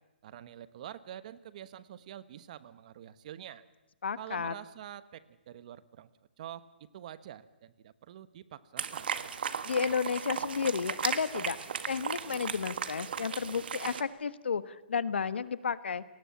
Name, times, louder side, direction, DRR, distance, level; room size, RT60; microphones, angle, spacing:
voice 1, 0.2-3.6 4.2-6.1 6.4-6.6 6.9-9.1, right 11 dB, 40° right, 15 dB, 1.2 m, -46 dB
voice 2, 4.0-4.6 9.6-16.0, left 6 dB, 80° left, 14 dB, 1.3 m, -32 dB
sound 1, 8.8-14.0, right 7 dB, 60° right, 1.7 m, -36 dB
29.0 x 20.0 x 7.2 m, 1.0 s
hypercardioid pair, 155°, 6 cm